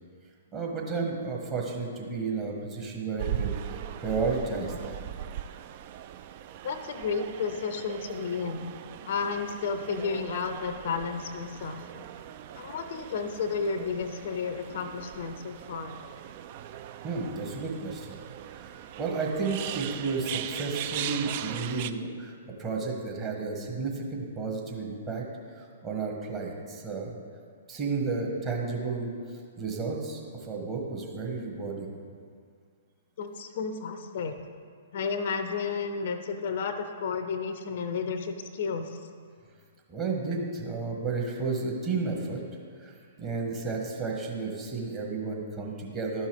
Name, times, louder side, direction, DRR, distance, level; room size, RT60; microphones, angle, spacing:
voice 1, 0.5-5.0 17.0-18.1 18.5-25.2 25.6-27.1 27.7-29.1 29.6-31.9 39.9-42.4 42.8-42.9 43.2-46.3, right 4 dB, 20° right, -1 dB, 1.3 m, -32 dB
sound 1, 3.2-21.9, right 10 dB, 40° right, 0.3 m, -39 dB
voice 2, 6.6-8.7 9.0-11.8 12.6-16.0 33.2-34.4 34.9-39.0, left 5 dB, 50° left, 8 dB, 0.5 m, -32 dB
11.5 x 5.4 x 3.4 m, 2.1 s
figure-of-eight pair, 115°, 0 cm